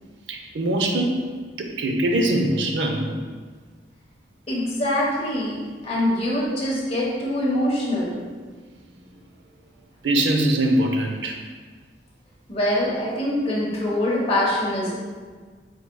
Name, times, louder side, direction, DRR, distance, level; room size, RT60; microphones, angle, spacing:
voice 1, 0.3-1.2 1.6-3.1 6.2-6.6 10.0-11.4, right 1 dB, 85° right, 2 dB, 0.6 m, -23 dB
voice 2, 4.5-8.2 12.5-15.0, left 1 dB, 35° left, -6 dB, 1.2 m, -24 dB
4.6 x 4.5 x 2.3 m, 1.5 s
head